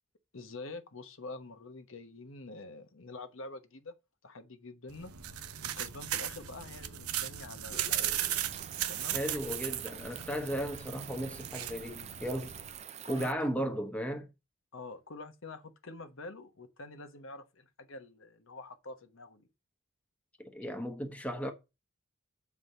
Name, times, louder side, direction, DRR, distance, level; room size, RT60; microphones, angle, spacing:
voice 1, 0.3-4.0 4.2-5.1 5.6-8.1 8.9-9.2 13.0-13.7 14.7-19.5, left 2 dB, 65° left, 1.1 m, -46 dB
sound 1, 4.9-12.8, right 11 dB, 90° right, 0.9 m, -37 dB
sound 2, 7.7-8.6, left 3 dB, 40° left, 0.6 m, -50 dB
sound 3, 8.2-13.3, right 10 dB, 30° right, 0.4 m, -46 dB
voice 2, 9.1-12.6 13.1-14.3 20.4-21.5, equal, 5° left, 1.1 m, -35 dB
7.4 x 4.8 x 6.7 m
head